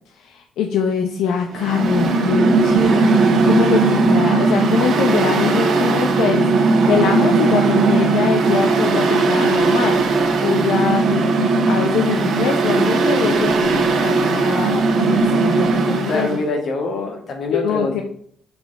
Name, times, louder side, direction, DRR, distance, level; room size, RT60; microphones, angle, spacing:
voice 1, 0.1-11.3 11.7-16.4 17.5-18.0, left 7 dB, 85° left, 4 dB, 0.7 m, -23 dB
Mechanical fan, 1.5-16.4, right 3 dB, 70° right, 1.4 m, -17 dB
voice 2, 16.1-18.0, left 2 dB, 60° left, 2 dB, 2.0 m, -24 dB
6.7 x 4.6 x 4.1 m, 0.62 s
cardioid pair, 90°, 0 cm